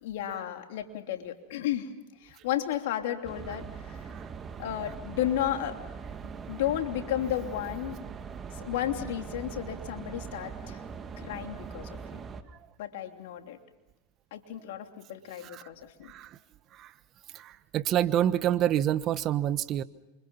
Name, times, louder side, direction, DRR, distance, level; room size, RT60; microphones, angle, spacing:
voice 1, 0.0-1.9 2.2-4.1 4.6-5.8 6.5-8.0 8.6-10.8 11.2-12.2 12.8-13.6 14.3-16.1, left 11 dB, 70° left, 5 dB, 3.0 m, -33 dB
sound 1, 3.2-12.4, right 6 dB, 25° right, 2.2 m, -41 dB
voice 2, 17.3-19.8, right 11 dB, 40° right, 14 dB, 1.2 m, -27 dB
28.5 x 25.5 x 5.6 m, 1.0 s
hypercardioid pair, 105°, 0 cm